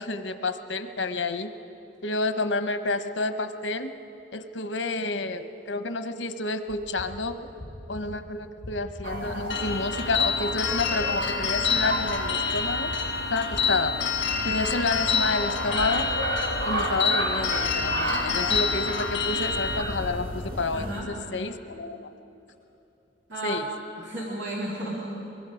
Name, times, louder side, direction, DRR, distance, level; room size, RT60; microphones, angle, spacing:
voice 1, 0.0-1.5 2.0-3.9 4.3-7.4 7.9-12.9 13.3-13.9 14.4-16.1 16.6-22.1 23.4-23.7, left 3 dB, 85° left, 9 dB, 1.0 m, -29 dB
sound 1, 6.7-19.5, left 1 dB, 10° right, 4.2 m, -44 dB
sound 2, 9.0-21.0, right 1 dB, 55° right, 2.3 m, -33 dB
sound 3, 9.5-19.8, left 6 dB, 70° left, 1.6 m, -28 dB
voice 2, 20.7-21.1 23.3-23.7 24.0-25.1, right 1 dB, 75° right, -5 dB, 2.5 m, -33 dB
23.5 x 23.0 x 5.0 m, 2.8 s
head